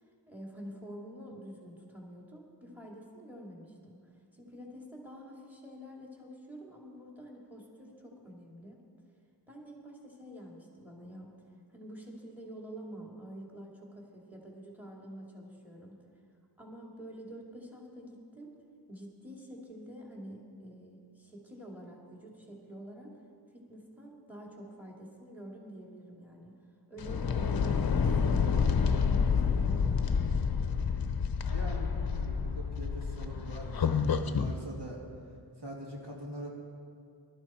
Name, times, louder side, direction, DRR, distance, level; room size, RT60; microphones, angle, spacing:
voice 1, 0.3-8.8 9.5-11.3 11.7-16.0 16.6-18.5 18.9-23.2 23.5-26.5 26.9-30.3, equal, 5° right, -2 dB, 2.6 m, -47 dB
sound 1, 27.0-34.6, left 6 dB, 55° left, 0.7 m, -29 dB
voice 2, 31.4-35.0 35.6-36.5, right 1 dB, 75° right, -3 dB, 2.6 m, -43 dB
19.5 x 12.5 x 4.4 m, 2.3 s
wide cardioid pair, 100°, 42 cm